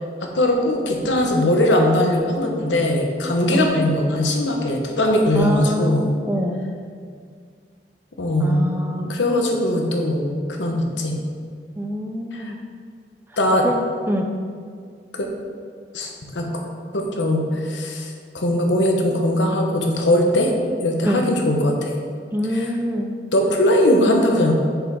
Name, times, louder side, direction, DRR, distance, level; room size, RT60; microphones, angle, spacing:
voice 1, 0.2-6.1 8.2-8.6 9.1-10.3 10.6-11.2 12.3-12.5 13.4-13.7 15.1-15.3 15.9-16.5 16.9-20.5 20.8-21.9 22.5-22.7 23.3-24.5, left 1 dB, 90° left, 2 dB, 1.0 m, -20 dB
voice 2, 5.4-6.6 8.4-9.1 11.8-12.6 13.6-14.3 21.0-21.2 22.3-23.1, equal, 10° right, 2 dB, 0.4 m, -25 dB
6.4 x 5.0 x 4.7 m, 2.1 s
head